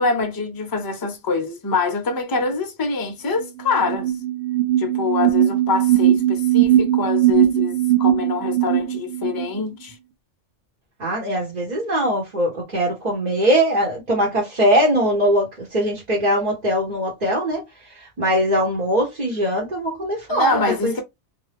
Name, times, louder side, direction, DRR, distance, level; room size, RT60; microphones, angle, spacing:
voice 1, 0.0-4.1 4.8-10.0 20.3-21.0, left 4 dB, 25° left, 0.5 m, -24 dB
sound 1, 3.4-3.5 3.7-9.5, right 12 dB, 75° right, 0.9 m, -19 dB
voice 2, 11.0-17.6 18.2-21.0, equal, 40° right, 1.0 m, -21 dB
2.6 x 2.2 x 3.3 m
omnidirectional pair, 1.2 m